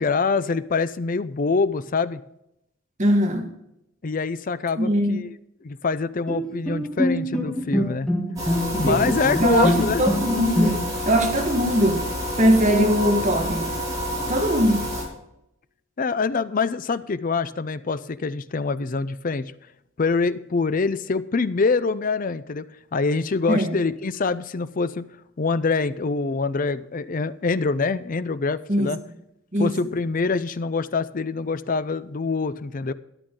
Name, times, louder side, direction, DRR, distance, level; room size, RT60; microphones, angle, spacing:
voice 1, 0.0-2.2 4.0-5.4 5.6-8.1 8.8-10.0 16.0-19.4 20.0-22.6 22.9-25.1 25.4-29.0 29.6-32.9, left 4 dB, 40° left, 0.5 m, -25 dB
voice 2, 3.0-3.5 4.8-5.2 8.7-9.7 10.0-10.8 11.1-12.0 12.4-13.6 14.3-14.9 23.5-23.7 28.7-28.9 29.5-29.7, equal, 35° right, 1.5 m, -21 dB
Bowed string instrument, 6.3-11.1, equal, 5° left, 1.4 m, -26 dB
sound 1, 8.4-15.0, equal, 15° right, 5.2 m, -28 dB
12.5 x 11.0 x 3.8 m
head